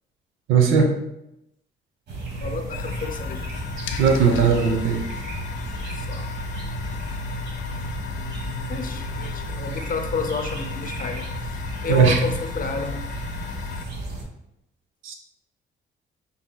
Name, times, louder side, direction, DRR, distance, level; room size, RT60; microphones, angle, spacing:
voice 1, 0.5-0.9 4.0-5.0 11.9-12.2 15.0-15.1, right 6 dB, 85° right, 3 dB, 0.7 m, -18 dB
sound 1, 2.1-14.2, right 2 dB, 60° right, 1.1 m, -33 dB
voice 2, 2.4-3.4 5.9-6.4 8.7-13.0, left 4 dB, 45° left, 5 dB, 0.6 m, -30 dB
sound 2, 2.7-13.9, left 9 dB, 85° left, 0.5 m, -35 dB
5.8 x 2.8 x 2.3 m, 0.83 s
cardioid pair, 90°, 20 cm